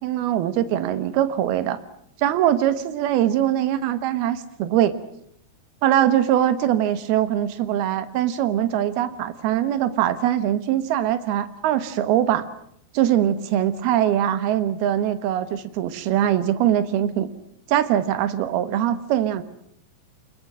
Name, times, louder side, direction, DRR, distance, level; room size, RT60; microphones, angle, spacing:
voice 1, 0.0-1.8 2.2-4.9 5.8-12.5 12.9-17.3 17.7-19.4, right 11 dB, 65° right, 12 dB, 2.9 m, -22 dB
25.5 x 21.5 x 7.6 m, 0.71 s
omnidirectional pair, 5.3 m